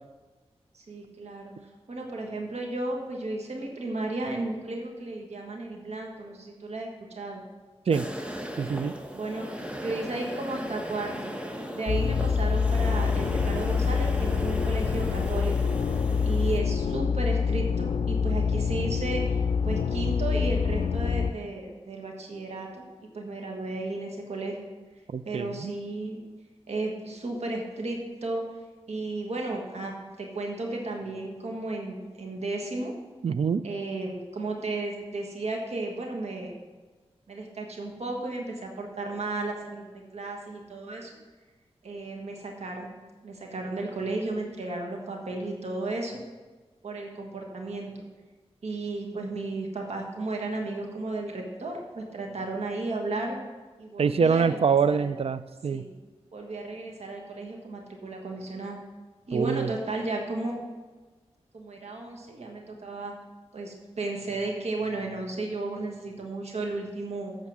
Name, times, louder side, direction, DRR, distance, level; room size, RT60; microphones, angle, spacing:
voice 1, 0.7-1.5 1.9-6.9 7.1-7.4 9.1-9.5 9.8-11.3 11.7-15.7 16.2-19.2 19.6-22.8 23.1-24.6 25.2-26.2 26.7-28.4 28.9-32.9 33.6-36.5 37.3-39.8 40.1-41.1 41.8-42.9 43.2-46.2 46.8-47.9 48.6-53.4 53.8-54.6 54.9-55.1 55.7-55.9 56.3-58.8 59.3-60.6 61.5-63.1 63.5-67.4, right 2 dB, 80° right, 1 dB, 1.4 m, -34 dB
sound 1, 7.9-16.6, equal, 10° right, 1.0 m, -36 dB
voice 2, 8.6-8.9 25.1-25.7 33.2-33.6 54.0-55.8 59.3-59.7, right 6 dB, 65° right, 14 dB, 0.4 m, -25 dB
sound 2, 11.9-21.3, left 6 dB, 75° left, 0.4 m, -26 dB
8.4 x 6.5 x 6.2 m, 1.3 s
wide cardioid pair, 65°, 11 cm